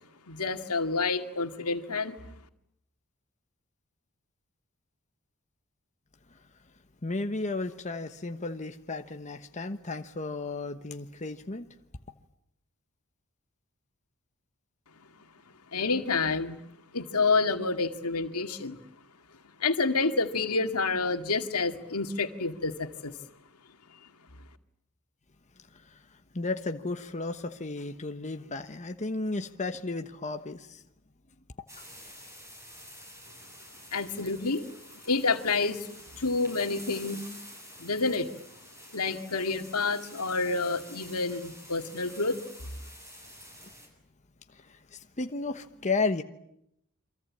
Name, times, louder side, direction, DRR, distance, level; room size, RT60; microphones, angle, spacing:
voice 1, 0.3-2.2 15.7-16.6 16.9-18.8 19.6-23.1 33.9-34.7 35.1-37.2 37.8-38.3 38.9-42.4, left 4 dB, 85° left, 7 dB, 2.3 m, -28 dB
voice 2, 7.0-11.7 25.7-30.8 43.6-43.7 44.5-46.2, left 3 dB, 35° left, 6 dB, 1.2 m, -34 dB
sound 1, 31.7-43.9, equal, 15° right, 7.3 m, -49 dB
28.5 x 24.0 x 8.7 m, 0.78 s
head